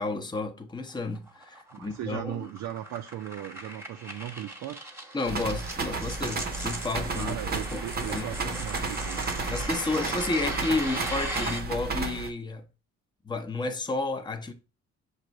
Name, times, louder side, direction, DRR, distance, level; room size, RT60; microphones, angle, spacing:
voice 1, 0.0-2.4 5.1-7.4 7.7-8.6 9.5-12.7 13.2-14.5, left 3 dB, 15° left, 0.7 m, -31 dB
sound 1, 0.9-11.6, right 1 dB, 10° right, 1.1 m, -38 dB
voice 2, 1.7-4.9 7.1-9.2, right 12 dB, 70° right, 0.5 m, -37 dB
sound 2, 5.3-12.3, right 4 dB, 30° right, 0.7 m, -33 dB
6.4 x 2.6 x 3.1 m
cardioid pair, 90°, 30 cm